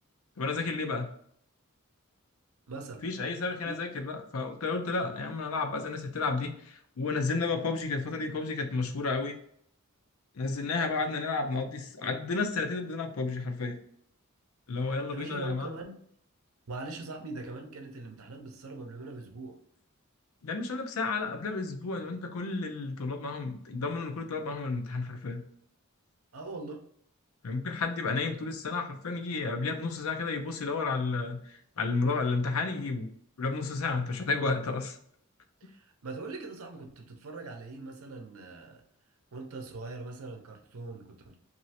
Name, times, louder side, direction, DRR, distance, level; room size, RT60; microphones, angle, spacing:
voice 1, 0.4-1.1 3.0-9.3 10.3-13.8 14.7-15.7 20.4-25.4 27.4-33.1 33.4-35.0, left 3 dB, 75° left, 6 dB, 0.6 m, -32 dB
voice 2, 2.7-3.0 3.6-3.8 14.8-16.0 16.7-19.6 26.3-26.8 35.6-38.8 39.3-41.4, right 3 dB, 80° right, 3 dB, 0.7 m, -42 dB
3.1 x 2.6 x 2.8 m, 0.65 s
head